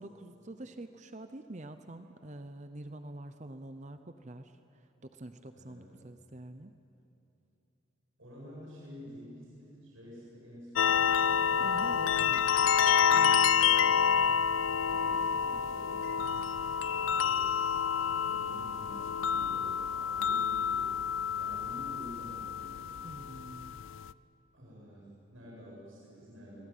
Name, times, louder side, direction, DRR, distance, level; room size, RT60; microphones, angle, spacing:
voice 1, 0.0-6.7 11.6-12.5 13.1-13.5 23.0-23.8, right 1 dB, 35° right, 9 dB, 0.7 m, -46 dB
voice 2, 5.5-6.0 8.2-12.9 13.5-14.0 14.8-16.1 16.5-21.0 21.3-23.0 24.5-26.6, equal, 80° right, -5 dB, 8.0 m, -50 dB
sound 1, 10.8-24.1, left 7 dB, 70° left, 0.5 m, -28 dB
25.0 x 18.5 x 9.2 m, 2.9 s
head